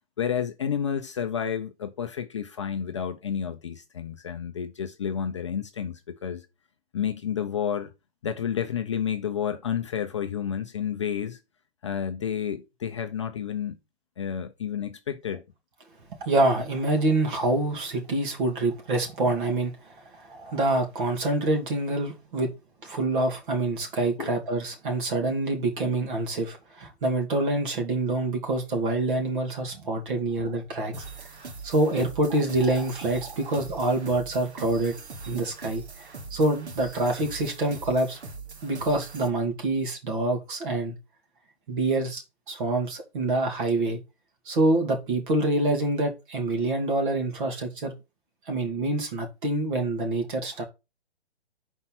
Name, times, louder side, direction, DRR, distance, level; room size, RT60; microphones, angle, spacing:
voice 1, 0.2-6.5 6.9-7.9 8.2-11.4 11.8-13.8 14.2-15.4 24.2-24.3, left 8 dB, 30° left, 0.5 m, -30 dB
voice 2, 16.2-22.5 22.8-31.3 31.6-35.0 35.3-35.8 36.3-38.2 38.6-40.9 41.7-42.2 42.5-44.0 44.5-47.9 48.5-50.6, right 2 dB, 50° right, 2.7 m, -26 dB
sound 1, 30.9-39.3, right 4 dB, 80° right, 2.0 m, -42 dB
5.6 x 4.4 x 5.8 m
hypercardioid pair, 160°, 33 cm